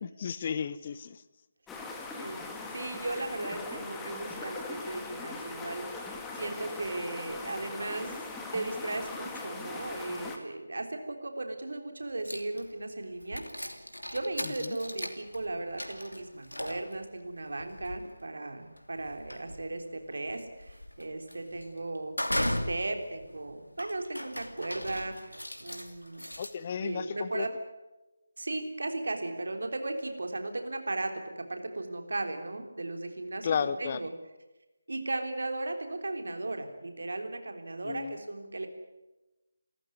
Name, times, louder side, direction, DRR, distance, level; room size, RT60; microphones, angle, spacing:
voice 1, 0.0-1.2 14.4-14.8 26.4-27.5 33.4-34.0 37.8-38.2, left 7 dB, 30° left, 16 dB, 0.7 m, -33 dB
sound 1, 1.7-10.4, left 3 dB, 5° left, 1.9 m, -40 dB
voice 2, 2.7-8.1 8.5-13.7 14.1-25.3 25.6-26.3 26.8-27.5 28.4-34.1 34.9-38.7, right 2 dB, 55° right, 5 dB, 3.6 m, -36 dB
sound 2, 12.3-12.8 13.2-26.5, left 1 dB, 80° left, 2.8 m, -38 dB
28.5 x 14.5 x 9.5 m, 1.0 s
figure-of-eight pair, 155°, 0 cm